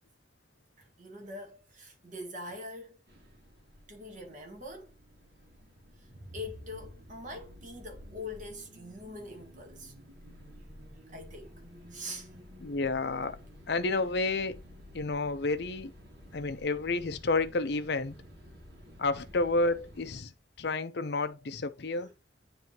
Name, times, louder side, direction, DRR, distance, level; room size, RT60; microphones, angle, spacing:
voice 1, 0.8-3.0 3.9-4.9 6.0-9.9 11.1-11.6 11.9-12.3 21.9-22.1, left 1 dB, 45° right, 1.9 m, -43 dB
sound 1, 3.1-20.2, equal, 65° right, 2.4 m, -52 dB
voice 2, 12.6-13.4 13.7-14.6 14.9-15.9 16.3-18.1 19.0-20.3 20.6-22.1, left 3 dB, 70° left, 0.7 m, -30 dB
9.5 x 3.4 x 2.9 m
head